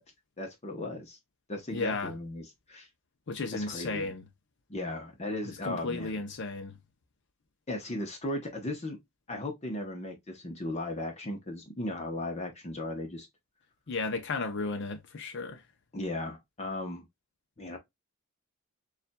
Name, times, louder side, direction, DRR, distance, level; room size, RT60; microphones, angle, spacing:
voice 1, 0.4-1.2 1.5-2.9 3.5-4.1 4.7-6.2 7.7-9.0 9.3-13.3 15.9-17.1 17.6-17.8, left 1 dB, 30° left, 0.9 m, -36 dB
voice 2, 1.7-2.1 3.3-4.2 5.5-6.8 13.9-15.6, left 3 dB, 55° left, 0.6 m, -34 dB
6.7 x 2.5 x 2.2 m
head